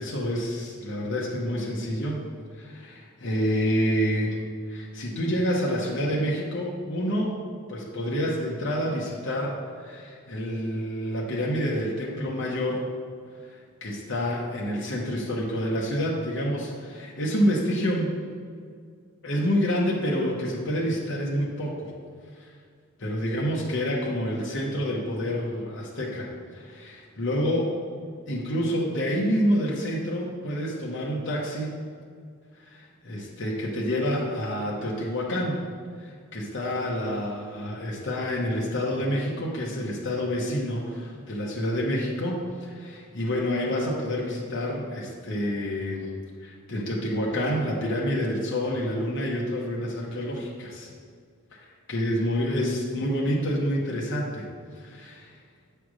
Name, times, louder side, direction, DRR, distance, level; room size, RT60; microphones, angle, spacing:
voice 1, 0.0-2.2 2.5-4.4 4.7-7.4 7.7-12.9 13.8-18.1 19.2-21.9 22.4-22.5 23.0-27.7 28.3-31.7 32.7-35.6 36.0-46.1 46.4-50.9 51.5-51.6 51.9-54.5 54.8-55.3, equal, 55° left, -4 dB, 1.0 m, -28 dB
7.4 x 3.3 x 6.2 m, 2.1 s
head